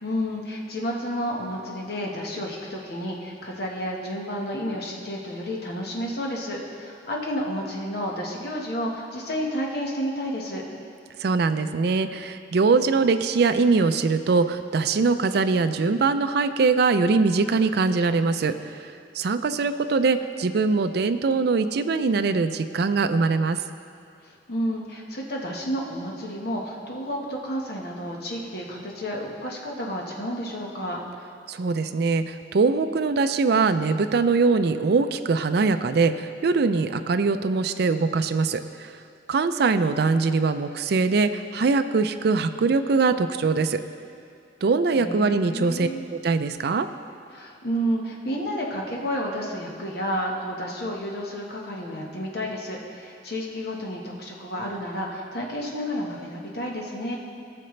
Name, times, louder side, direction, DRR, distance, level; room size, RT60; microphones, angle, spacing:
voice 1, 0.0-10.6 24.2-31.0 45.0-46.0 47.3-57.2, equal, 60° left, -1 dB, 1.3 m, -31 dB
voice 2, 11.2-23.6 31.5-38.9 39.3-43.8 44.6-46.9, right 4 dB, 65° right, 9 dB, 0.4 m, -22 dB
17.0 x 6.7 x 3.2 m, 2.4 s
head